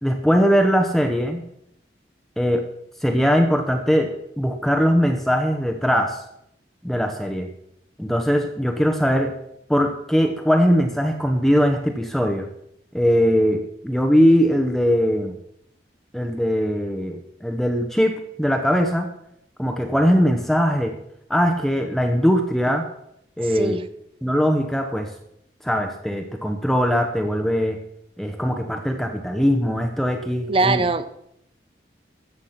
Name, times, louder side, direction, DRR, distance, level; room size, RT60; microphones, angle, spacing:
voice 1, 0.0-1.4 2.4-2.7 3.0-6.2 6.8-7.5 8.0-9.3 9.7-12.5 12.9-15.4 16.1-19.1 19.6-21.0 21.3-22.9 23.4-23.8 24.2-25.1 25.6-27.8 28.2-30.8, equal, ahead, 4 dB, 0.9 m, -20 dB
voice 2, 30.5-31.1, right 3 dB, 30° right, 12 dB, 0.8 m, -21 dB
13.5 x 8.1 x 5.8 m, 0.75 s
head